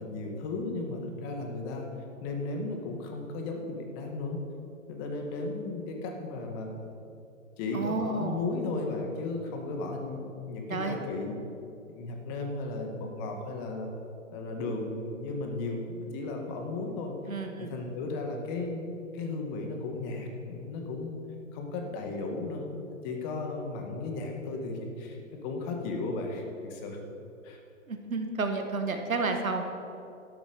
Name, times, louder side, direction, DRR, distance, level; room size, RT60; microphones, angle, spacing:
voice 1, 0.0-1.9 2.2-4.4 4.9-6.7 7.6-11.3 11.9-13.9 14.3-17.1 17.6-21.2 21.5-27.0 27.4-27.6, left 3 dB, 35° left, 2 dB, 1.9 m, -35 dB
voice 2, 7.7-8.4 10.7-11.0 17.3-17.8 27.9-29.6, right 3 dB, 85° right, 5 dB, 1.6 m, -31 dB
12.0 x 7.5 x 6.7 m, 2.6 s
figure-of-eight pair, 120°, 40 cm